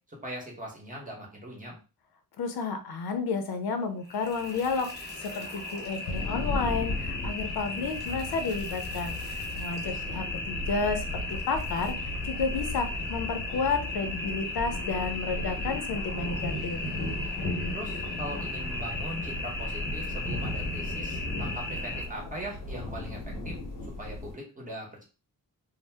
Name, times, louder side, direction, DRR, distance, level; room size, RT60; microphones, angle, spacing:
voice 1, 0.2-1.8 9.8-10.2 17.7-23.6 24.0-25.0, equal, 20° right, -1 dB, 0.9 m, -40 dB
voice 2, 2.4-4.9 5.2-9.2 9.6-11.9 12.2-16.8, left 4 dB, 85° left, 7 dB, 0.6 m, -31 dB
sound 1, 4.0-22.0, left 2 dB, 25° left, 0.9 m, -36 dB
sound 2, 6.0-24.3, left 1 dB, 60° left, 0.9 m, -36 dB
2.7 x 2.0 x 3.3 m, 0.33 s
wide cardioid pair, 165°, 36 cm